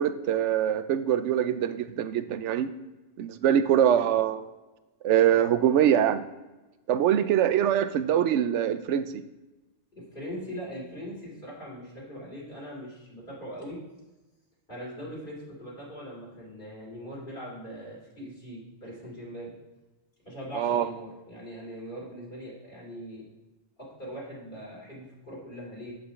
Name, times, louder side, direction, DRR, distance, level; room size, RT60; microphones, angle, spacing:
voice 1, 0.0-2.7 3.2-4.4 5.0-6.2 6.9-9.0 20.5-20.9, right 10 dB, 85° right, 12 dB, 0.9 m, -23 dB
voice 2, 9.9-13.8 14.7-19.5 20.2-23.3 23.8-25.9, equal, 50° left, -7 dB, 3.4 m, -41 dB
8.1 x 7.7 x 3.2 m, 1.1 s
omnidirectional pair, 1.2 m